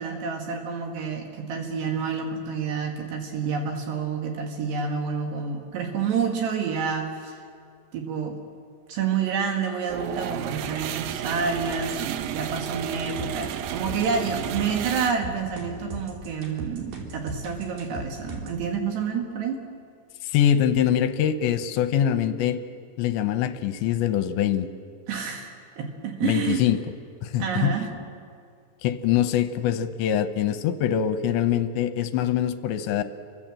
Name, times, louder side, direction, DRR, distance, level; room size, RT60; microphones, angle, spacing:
voice 1, 0.0-7.4 7.9-8.4 8.9-19.6 25.1-26.6 27.4-27.9, right 6 dB, 70° right, 3 dB, 3.6 m, -29 dB
sound 1, 9.9-15.1, right 11 dB, 90° right, 2.0 m, -33 dB
sound 2, 13.2-18.6, right 2 dB, 55° right, 4.6 m, -37 dB
voice 2, 20.2-22.6 23.0-24.7 26.2-26.8 27.2-27.8 28.8-33.0, left 10 dB, 80° left, 10 dB, 3.0 m, -23 dB
30.0 x 24.0 x 7.6 m, 2.4 s
omnidirectional pair, 5.4 m